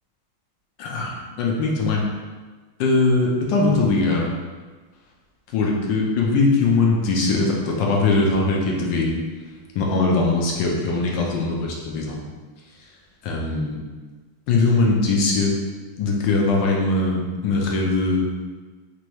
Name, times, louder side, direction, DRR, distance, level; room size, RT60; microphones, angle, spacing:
voice 1, 0.8-1.1 1.4-2.0 2.8-4.3 5.5-9.1 9.7-12.2 13.2-13.8 14.5-15.6 16.0-18.3, left 3 dB, 75° left, -1 dB, 1.3 m, -21 dB
4.5 x 2.6 x 3.0 m, 1.4 s
omnidirectional pair, 2.3 m